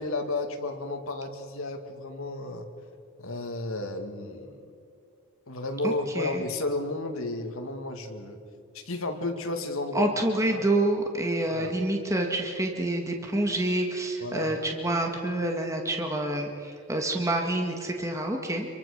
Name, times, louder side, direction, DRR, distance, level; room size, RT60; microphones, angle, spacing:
voice 1, 0.0-2.7 3.2-4.6 5.5-8.4 8.9-10.1 10.5-10.6 11.5-11.7 14.2-14.6, left 2 dB, 70° left, 5 dB, 2.3 m, -32 dB
voice 2, 5.8-6.4 9.9-18.7, right 1 dB, 15° right, 2 dB, 1.8 m, -28 dB
26.5 x 23.5 x 6.8 m, 2.3 s
head